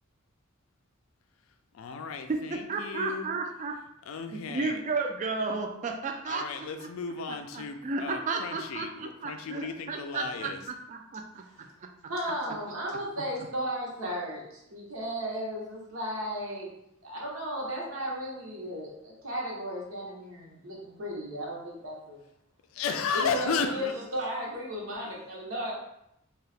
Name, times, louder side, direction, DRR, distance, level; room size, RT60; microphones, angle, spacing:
voice 1, 1.7-3.3 4.1-4.8 6.3-10.6 22.7-23.9, left 5 dB, 75° left, 7 dB, 0.3 m, -34 dB
voice 2, 2.3-3.8 4.3-6.9 7.3-11.4, right 3 dB, 35° right, 4 dB, 0.3 m, -33 dB
voice 3, 12.1-16.7 17.0-22.2 23.1-25.7, equal, 80° right, -4 dB, 0.9 m, -35 dB
2.7 x 2.3 x 3.3 m, 0.80 s
head